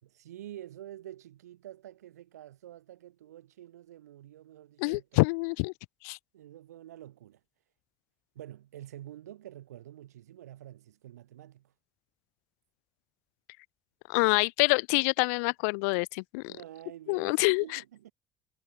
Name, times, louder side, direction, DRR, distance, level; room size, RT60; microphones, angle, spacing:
voice 1, 0.0-5.2 6.3-7.4 8.3-11.7 16.5-18.1, right 12 dB, 85° right, 5.1 m, -48 dB
voice 2, 4.8-5.7 6.0-6.2 14.1-16.5 17.1-17.8, left 31 dB, 75° left, 0.5 m, -26 dB
hypercardioid pair, 55°, 8 cm